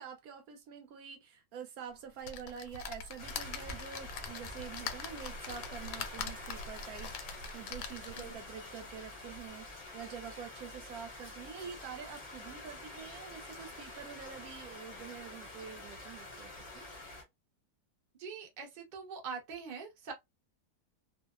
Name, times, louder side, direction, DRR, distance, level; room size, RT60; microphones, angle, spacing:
voice 1, 0.0-16.9, right 7 dB, 70° right, 1.0 m, -47 dB
sound 1, 2.2-8.5 9.0-9.1 9.4-9.5, left 5 dB, 80° left, 1.1 m, -43 dB
sound 2, 3.2-17.2, left 2 dB, 35° left, 0.6 m, -47 dB
voice 2, 18.2-20.1, right 5 dB, 50° right, 0.5 m, -43 dB
2.7 x 2.0 x 2.3 m
omnidirectional pair, 1.8 m